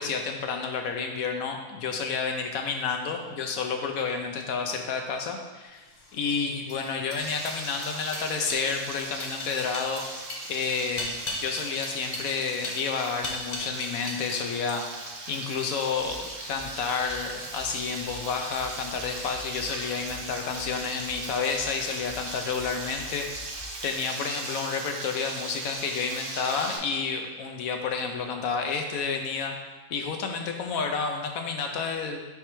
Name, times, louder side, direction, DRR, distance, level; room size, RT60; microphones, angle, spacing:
voice 1, 0.0-14.9 15.3-23.3 23.8-29.6 29.9-32.2, left 5 dB, 80° left, 4 dB, 1.2 m, -30 dB
sound 1, 5.9-14.4 14.7-15.1, left 2 dB, 40° left, 0.7 m, -38 dB
Frying (food), 7.2-26.8, right 2 dB, 75° right, 1.5 m, -39 dB
sound 2, 16.0-24.0, left 2 dB, 20° left, 1.8 m, -49 dB
7.0 x 4.7 x 3.3 m, 1.3 s
omnidirectional pair, 1.5 m